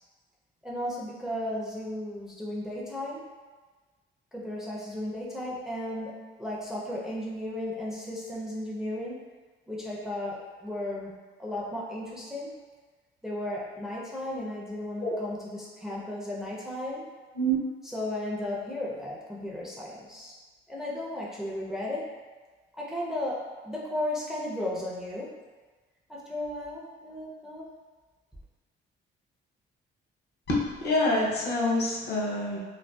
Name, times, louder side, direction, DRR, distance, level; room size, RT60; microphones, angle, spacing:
voice 1, 0.6-3.3 4.3-9.3 9.7-12.5 13.2-17.1 17.8-20.3 20.7-22.1 22.8-25.3 26.1-27.7, left 1 dB, ahead, -5 dB, 0.4 m, -35 dB
voice 2, 30.5-32.6, left 1 dB, 55° left, -4 dB, 0.7 m, -26 dB
2.5 x 2.3 x 2.2 m, 1.3 s
cardioid pair, 90°, 20 cm